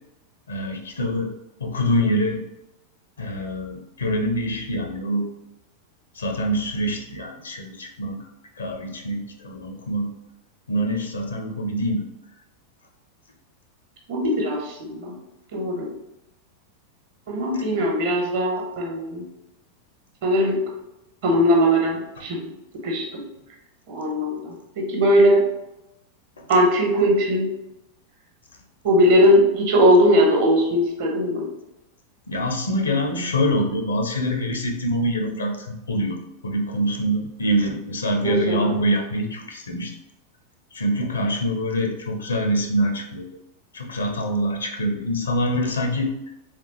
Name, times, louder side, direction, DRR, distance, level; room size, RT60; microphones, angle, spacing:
voice 1, 0.5-1.3 1.6-2.4 3.2-5.3 6.2-8.2 8.6-10.1 10.7-12.1 32.3-36.2 36.4-39.9 40.7-43.3 43.7-46.1, equal, 70° left, 3 dB, 0.7 m, -25 dB
voice 2, 14.1-15.1 15.5-15.9 17.3-19.2 20.2-20.6 21.2-22.4 22.7-23.2 23.9-25.4 26.5-27.5 28.8-31.5 38.2-38.8, equal, 50° right, 0 dB, 1.1 m, -20 dB
3.4 x 3.3 x 3.0 m, 0.92 s
figure-of-eight pair, 90°, 0 cm